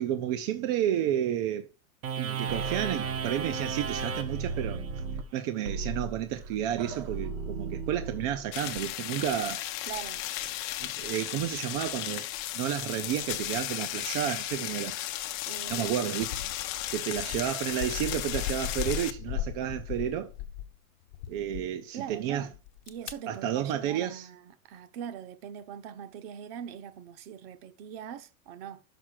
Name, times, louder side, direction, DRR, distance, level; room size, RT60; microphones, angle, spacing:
voice 1, 0.0-1.7 2.2-4.8 5.3-9.6 10.8-12.3 12.5-15.0 15.7-16.4 16.9-20.3 21.3-22.5 23.3-24.3, right 11 dB, 30° right, 0.4 m, -31 dB
sound 1, 2.0-8.8, right 5 dB, 90° right, 1.7 m, -34 dB
sound 2, 8.5-19.1, left 14 dB, 35° left, 0.6 m, -35 dB
voice 2, 9.9-10.2 15.4-16.6 21.9-22.6 22.9-28.8, right 9 dB, 45° right, 0.8 m, -42 dB
sound 3, 15.6-15.8 16.2-20.7 21.1-21.6 22.5-23.1, left 12 dB, 55° left, 1.1 m, -37 dB
6.1 x 5.5 x 6.2 m
supercardioid pair, 155°, 41 cm